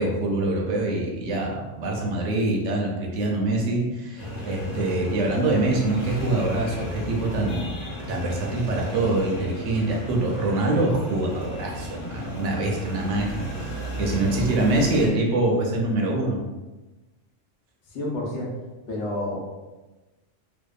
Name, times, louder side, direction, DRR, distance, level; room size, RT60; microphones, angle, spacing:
voice 1, 0.0-7.7 8.1-13.5 14.0-16.4, right 2 dB, 80° right, 0 dB, 0.9 m, -24 dB
sound 1, 4.2-15.1, equal, 45° left, 0.9 m, -34 dB
voice 2, 14.6-15.0 17.9-18.5 18.9-19.4, left 1 dB, 70° left, -3 dB, 0.9 m, -30 dB
2.7 x 2.2 x 2.3 m, 1.1 s
omnidirectional pair, 1.3 m